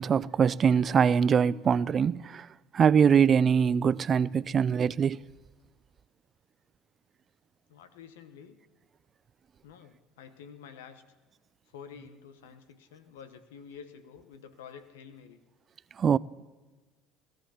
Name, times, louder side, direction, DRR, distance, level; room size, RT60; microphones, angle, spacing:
voice 1, 0.0-2.5 2.7-5.2 16.0-16.2, right 7 dB, 40° right, 0.3 m, -23 dB
voice 2, 7.7-8.6 9.6-11.0 11.7-15.4, left 7 dB, 90° left, 1.1 m, -49 dB
17.0 x 13.0 x 4.3 m
supercardioid pair, 85°, 0 cm